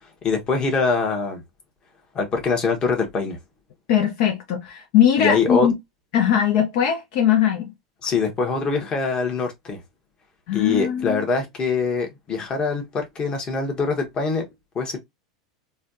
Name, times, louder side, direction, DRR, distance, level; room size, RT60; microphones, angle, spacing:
voice 1, 0.2-1.4 2.1-3.4 5.2-5.7 8.0-9.8 10.5-14.4 14.7-15.0, left 4 dB, 30° left, 1.1 m, -23 dB
voice 2, 3.9-5.7 6.1-7.7 10.5-11.2, left 9 dB, 60° left, 0.6 m, -20 dB
3.2 x 2.3 x 2.6 m
hypercardioid pair, 95°, 3 cm